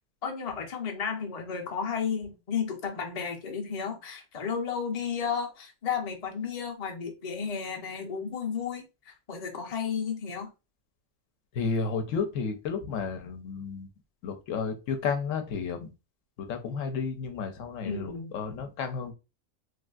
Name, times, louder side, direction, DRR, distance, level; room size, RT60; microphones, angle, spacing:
voice 1, 0.2-10.5 17.8-18.3, left 6 dB, 45° left, 0.5 m, -33 dB
voice 2, 11.5-13.9 14.2-15.9 16.4-19.1, left 5 dB, 75° left, 0.9 m, -32 dB
3.3 x 2.5 x 2.3 m
omnidirectional pair, 1.4 m